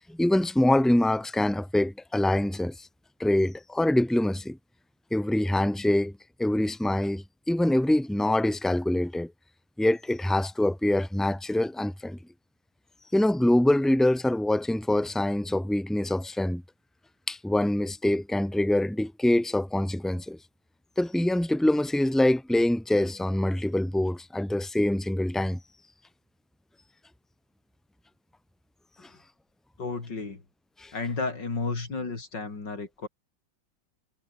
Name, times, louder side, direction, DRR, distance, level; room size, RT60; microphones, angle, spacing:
voice 1, 0.0-2.9 3.2-4.6 5.1-6.1 6.4-9.3 9.8-12.2 13.1-16.6 17.3-20.4 21.0-25.6 30.8-30.9, left 1 dB, ahead, 2.5 m, -25 dB
voice 2, 29.8-30.4 30.9-33.1, left 3 dB, 75° left, 4.6 m, -32 dB
omnidirectional pair, 1.9 m